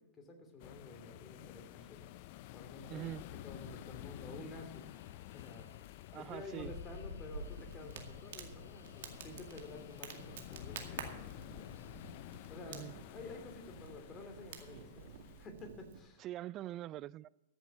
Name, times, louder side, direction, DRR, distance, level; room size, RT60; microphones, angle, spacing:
voice 1, 0.0-2.0 2.5-3.1 3.4-4.9 5.3-5.7 6.1-11.8 12.5-12.8 13.1-15.1 15.4-16.3, left 2 dB, 25° left, 2.9 m, -51 dB
sound 1, 0.6-15.5, left 16 dB, 55° left, 0.5 m, -51 dB
voice 2, 2.9-3.2 6.1-6.7 12.7-13.0 16.2-17.3, right 14 dB, 35° right, 0.3 m, -43 dB
sound 2, 3.0-12.8, left 5 dB, 85° left, 1.3 m, -55 dB
Crackle, 7.3-16.0, right 7 dB, 70° right, 2.1 m, -50 dB
14.5 x 7.2 x 7.3 m
hypercardioid pair, 115°, 0 cm